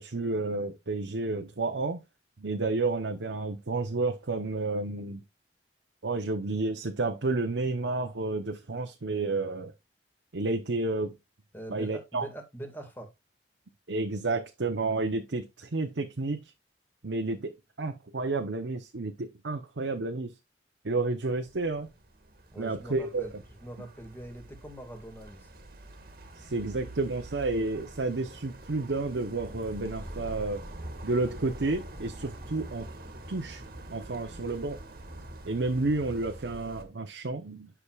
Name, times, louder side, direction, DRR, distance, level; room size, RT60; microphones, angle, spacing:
voice 1, 0.0-2.0 2.4-5.2 6.0-9.7 10.3-11.1 11.7-12.3 13.9-16.4 17.0-20.3 20.8-21.9 22.6-23.3 26.4-30.7 31.0-32.9 33.3-33.6 33.9-34.8 35.5-37.7, right 3 dB, 85° right, 0.9 m, -31 dB
voice 2, 11.5-13.1 22.5-23.3 23.6-25.5, right 1 dB, 10° left, 1.9 m, -43 dB
sound 1, 21.2-36.8, right 1 dB, 55° right, 1.6 m, -45 dB
10.0 x 6.0 x 2.4 m
head